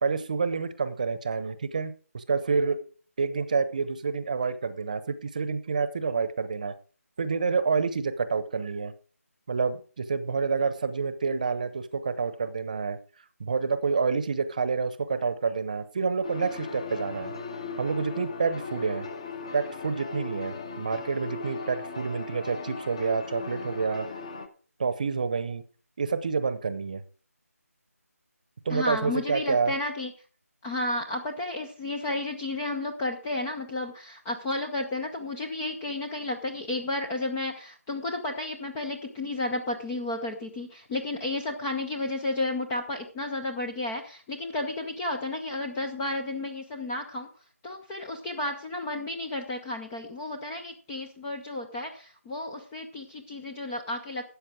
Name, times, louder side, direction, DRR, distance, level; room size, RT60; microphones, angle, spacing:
voice 1, 0.0-2.8 3.2-6.7 7.2-8.9 9.5-13.0 13.4-17.3 17.8-19.1 19.5-24.1 24.8-25.6 26.0-27.0 28.6-29.7, right 5 dB, 30° right, 14 dB, 0.9 m, -28 dB
sound 1, 16.2-24.5, left 4 dB, 25° left, 0.9 m, -38 dB
voice 2, 28.7-30.1 30.6-47.3 47.6-54.2, left 2 dB, 5° left, 2 dB, 0.5 m, -32 dB
13.0 x 8.5 x 4.8 m, 0.39 s
figure-of-eight pair, 165°, 8 cm